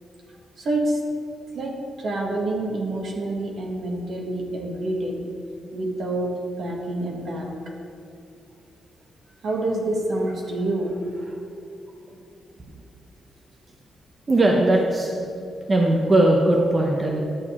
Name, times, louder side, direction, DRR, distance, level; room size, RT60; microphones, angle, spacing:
voice 1, 0.3-1.0 1.5-5.2 5.7-7.8 9.4-11.4, right 1 dB, 60° right, 0 dB, 1.5 m, -27 dB
voice 2, 14.3-17.2, right 1 dB, 30° right, 0 dB, 0.8 m, -20 dB
11.0 x 6.8 x 3.7 m, 2.6 s
cardioid pair, 105°, 0 cm